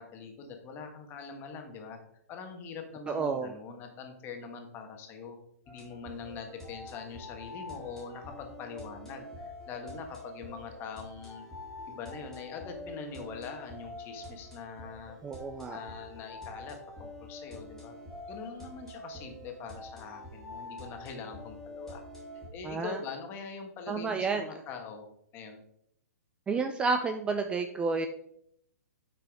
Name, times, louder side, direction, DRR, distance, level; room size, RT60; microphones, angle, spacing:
voice 1, 0.0-2.0 2.3-5.4 5.7-11.4 11.9-15.2 15.7-17.9 18.3-22.0 22.5-25.1 25.3-25.6, left 5 dB, 25° left, 4 dB, 1.4 m, -43 dB
voice 2, 3.1-3.5 15.2-15.8 22.6-23.0 23.9-24.6 26.5-28.1, right 4 dB, 10° right, 6 dB, 0.4 m, -30 dB
sound 1, 5.7-22.5, left 1 dB, 5° left, 2.3 m, -46 dB
8.3 x 5.9 x 3.5 m, 0.72 s
hypercardioid pair, 145°, 9 cm